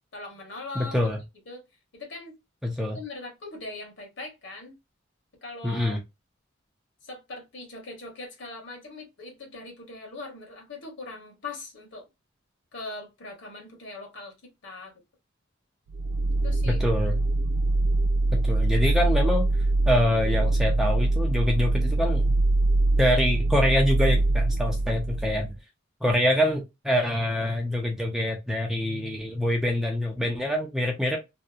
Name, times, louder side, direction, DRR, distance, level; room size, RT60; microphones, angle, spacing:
voice 1, 0.1-1.1 1.5-1.6 1.9-2.4 2.9-4.8 5.4-6.0 7.0-12.1 12.7-14.9 16.4-16.8, left 2 dB, 65° left, 1.1 m, -40 dB
voice 2, 0.8-1.2 2.6-3.0 5.6-6.0 16.7-17.2 18.3-19.4 19.9-22.3 23.0-25.5 26.0-31.2, left 1 dB, ahead, 0.5 m, -25 dB
sound 1, 15.9-25.5, right 2 dB, 65° right, 0.3 m, -23 dB
2.7 x 2.0 x 2.3 m
head